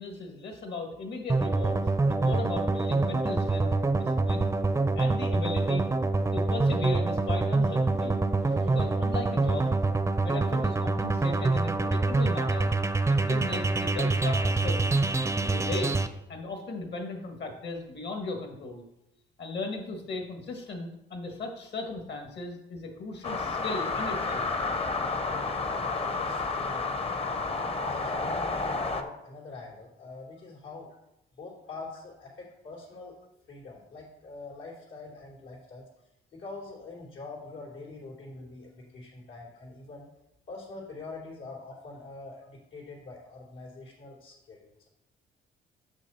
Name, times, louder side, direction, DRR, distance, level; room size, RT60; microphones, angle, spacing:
voice 1, 0.0-4.5 4.9-5.9 6.3-8.2 8.5-9.7 10.2-12.7 13.1-15.0 15.4-16.0 16.3-18.9 19.4-24.5, left 3 dB, 60° left, 4 dB, 1.6 m, -37 dB
sound 1, 1.3-16.1, right 3 dB, 15° right, 0.5 m, -26 dB
sound 2, 23.2-29.0, left 3 dB, 30° left, 0.7 m, -30 dB
voice 2, 25.7-27.5 27.9-30.9 31.4-33.2 33.5-35.8 36.3-40.1 40.5-44.9, left 3 dB, 85° left, -4 dB, 3.1 m, -44 dB
6.3 x 6.3 x 4.2 m, 0.84 s
cardioid pair, 90°, 20 cm